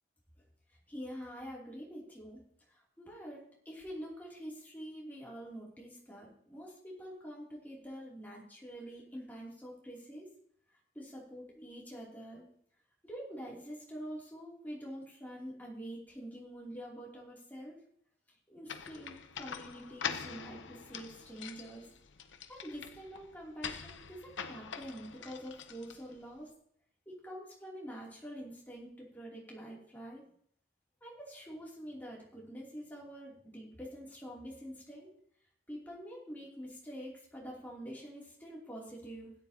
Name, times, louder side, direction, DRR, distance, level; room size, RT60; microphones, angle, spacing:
voice 1, 0.7-2.4 2.7-10.3 10.9-12.5 13.0-17.8 18.5-21.9 22.5-26.5 27.1-30.2 31.0-35.1 35.7-39.3, equal, 10° left, -4 dB, 2.8 m, -46 dB
sound 1, 18.7-26.3, left 7 dB, 85° left, 0.8 m, -44 dB
16.5 x 11.0 x 2.9 m, 0.64 s
head